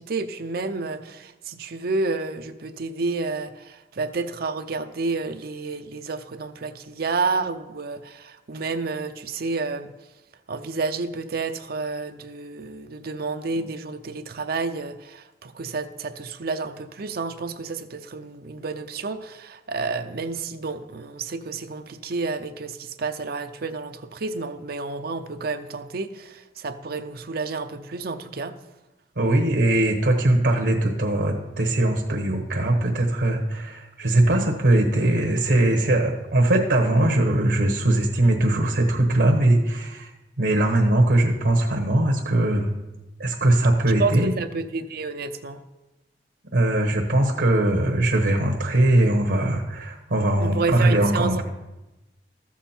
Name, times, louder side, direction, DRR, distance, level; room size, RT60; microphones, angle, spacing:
voice 1, 0.0-9.9 10.5-28.5 44.0-45.6 50.4-51.4, right 3 dB, 60° right, 8 dB, 0.6 m, -30 dB
voice 2, 29.2-40.1 40.4-42.7 43.2-44.4 46.5-51.4, right 1 dB, 75° right, 1 dB, 1.2 m, -21 dB
13.5 x 7.3 x 4.4 m, 1.0 s
head